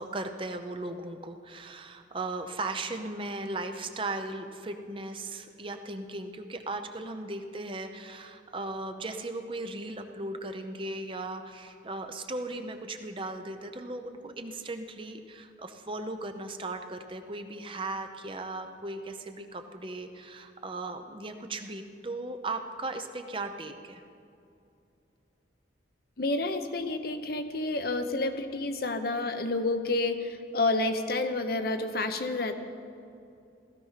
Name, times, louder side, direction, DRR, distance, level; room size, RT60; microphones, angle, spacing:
voice 1, 0.0-24.0, right 2 dB, 25° right, 7 dB, 0.7 m, -37 dB
voice 2, 26.2-32.5, left 2 dB, 50° left, 7 dB, 0.9 m, -29 dB
16.0 x 14.0 x 5.7 m, 2.6 s
head